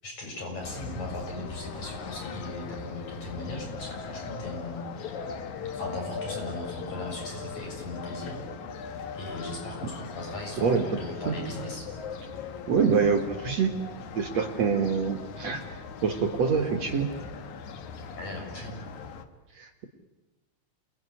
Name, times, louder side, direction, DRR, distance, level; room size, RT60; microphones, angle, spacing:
voice 1, 0.0-5.2 5.8-8.4 9.1-11.9 18.1-18.8, left 2 dB, 35° left, 1 dB, 8.0 m, -38 dB
sound 1, 0.6-19.2, left 5 dB, 60° left, 2.1 m, -39 dB
voice 2, 12.7-13.7 14.2-15.6 16.0-17.1 19.6-19.8, right 6 dB, 55° right, 5 dB, 2.0 m, -25 dB
28.5 x 21.0 x 10.0 m, 1.2 s
omnidirectional pair, 5.3 m